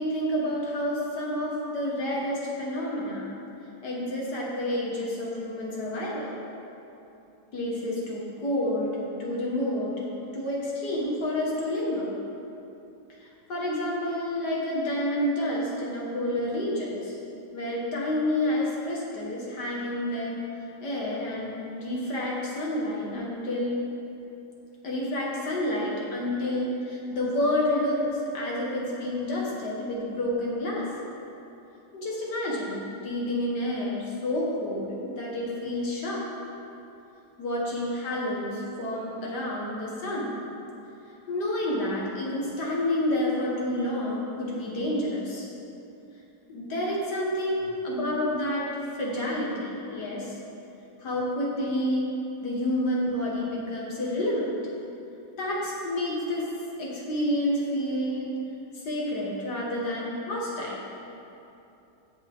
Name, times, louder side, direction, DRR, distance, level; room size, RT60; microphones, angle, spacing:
voice 1, 0.0-3.3 3.8-6.3 7.5-8.9 9.2-10.0 10.3-12.1 13.5-17.2 17.5-20.4 20.8-23.9 24.8-30.9 31.9-36.3 37.4-40.4 41.3-45.5 46.5-50.4 51.0-52.1 52.4-54.5 55.4-56.5 56.8-58.4 58.7-60.8, left 1 dB, 70° left, -4 dB, 2.3 m, -29 dB
16.5 x 6.0 x 3.7 m, 2.8 s
omnidirectional pair, 1.9 m